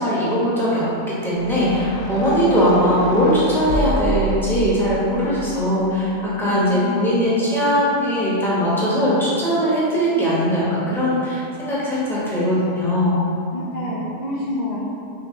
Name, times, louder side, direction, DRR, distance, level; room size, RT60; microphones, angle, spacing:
voice 1, 0.0-13.2, equal, ahead, -9 dB, 1.0 m, -20 dB
sound 1, 1.4-6.6, right 1 dB, 70° left, 0.9 m, -29 dB
voice 2, 6.4-7.0 13.5-14.9, left 1 dB, 50° left, -7 dB, 0.5 m, -28 dB
5.9 x 2.7 x 3.1 m, 2.7 s
omnidirectional pair, 1.4 m